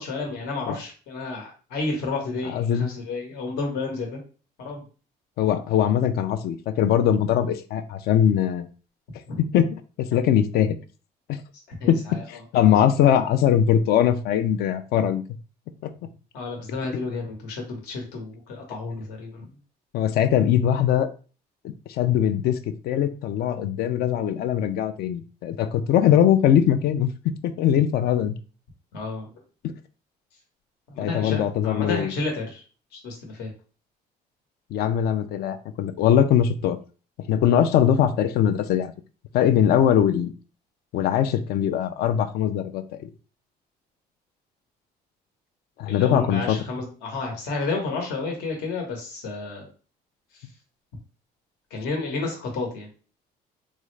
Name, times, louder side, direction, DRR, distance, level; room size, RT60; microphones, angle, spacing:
voice 1, 0.0-4.2 4.6-4.8 9.3-9.4 11.8-12.2 16.3-19.6 28.9-29.3 30.9-32.6 32.9-33.5 45.8-49.7 50.3-50.5 51.7-52.9, left 3 dB, 85° left, 1 dB, 1.0 m, -31 dB
voice 2, 2.5-2.9 5.4-8.7 9.4-10.8 11.3-11.4 11.9-12.0 12.3-15.2 15.8-15.9 19.9-21.1 21.9-22.6 22.8-27.1 27.4-28.4 31.0-32.1 34.7-36.8 37.3-38.9 39.3-40.3 40.9-43.1 45.8-46.6, left 9 dB, 70° left, 10 dB, 0.4 m, -21 dB
3.5 x 2.0 x 3.2 m, 0.37 s
cardioid pair, 110°, 17 cm